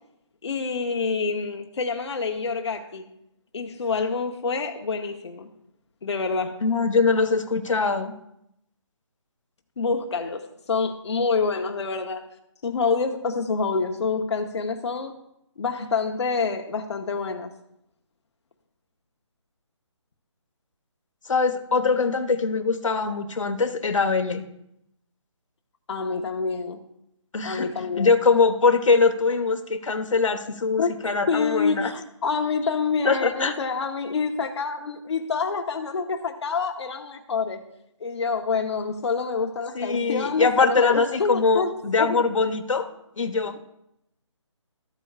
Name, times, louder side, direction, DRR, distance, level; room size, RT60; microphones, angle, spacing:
voice 1, 0.4-3.1 3.5-5.5 6.0-6.6 9.8-12.3 12.6-15.2 15.6-17.5 25.9-26.8 27.4-28.1 30.8-30.9 31.3-37.6 38.0-42.2, left 4 dB, 60° left, 3 dB, 0.9 m, -27 dB
voice 2, 6.6-8.1 21.3-24.4 27.3-27.7 28.0-31.9 33.0-33.5 39.7-42.9 43.2-43.6, left 4 dB, 85° left, 6 dB, 1.1 m, -22 dB
13.5 x 8.1 x 2.4 m, 0.81 s
hypercardioid pair, 165°, 16 cm